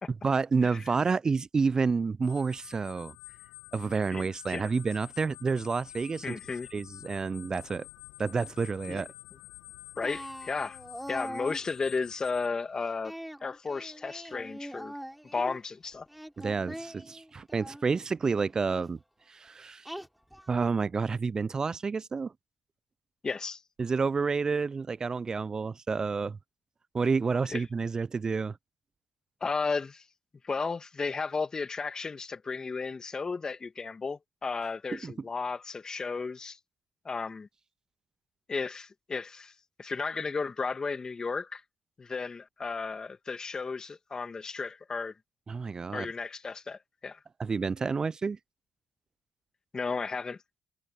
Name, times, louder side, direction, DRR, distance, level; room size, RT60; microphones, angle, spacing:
voice 1, 0.1-3.1 3.7-6.4 6.7-7.9 8.2-9.1 16.4-19.0 19.3-19.9 20.5-22.3 23.8-26.4 26.9-28.6 34.9-35.1 45.5-46.1 47.4-48.4, right 4 dB, 35° right, 0.4 m, -29 dB
sound 1, 2.2-12.5, left 26 dB, 80° left, 1.7 m, -49 dB
voice 2, 4.1-4.7 6.2-6.7 8.9-9.0 10.0-10.8 11.1-13.1 13.4-14.9 15.3-16.1 23.2-23.6 27.5-27.6 29.4-30.0 30.4-36.6 37.1-37.5 38.5-39.5 39.8-41.6 42.0-45.1 45.9-47.2 49.7-50.4, left 4 dB, 35° left, 2.0 m, -34 dB
Singing, 10.0-11.7 13.0-15.6 16.1-17.8 18.6-18.9 19.8-20.5, equal, ahead, 5.3 m, -42 dB
hypercardioid pair, 55°, 2 cm